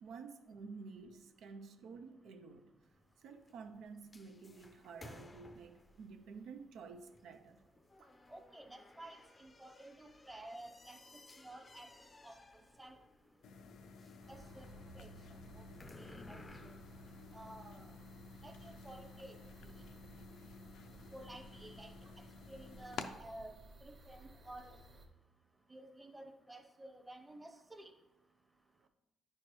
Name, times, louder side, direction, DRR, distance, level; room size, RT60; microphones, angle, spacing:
voice 1, 0.0-2.7 3.2-7.6 8.0-8.1 22.0-22.1 28.8-28.9, right 5 dB, 80° right, 0.5 m, -51 dB
sound 1, 2.8-18.2, left 2 dB, 25° left, 0.5 m, -60 dB
voice 2, 8.3-11.0 11.4-11.9 12.2-13.0 14.3-15.6 15.9-16.7 17.3-17.9 18.4-19.4 19.6-19.7 21.1-21.9 22.5-23.6 23.8-24.8 25.7-27.9, right 1 dB, 15° right, 0.8 m, -53 dB
sound 2, 13.4-23.1, left 5 dB, 75° left, 0.5 m, -52 dB
sound 3, 14.2-25.1, right 2 dB, 45° right, 1.3 m, -58 dB
9.6 x 4.4 x 3.1 m
cardioid pair, 90°, 0 cm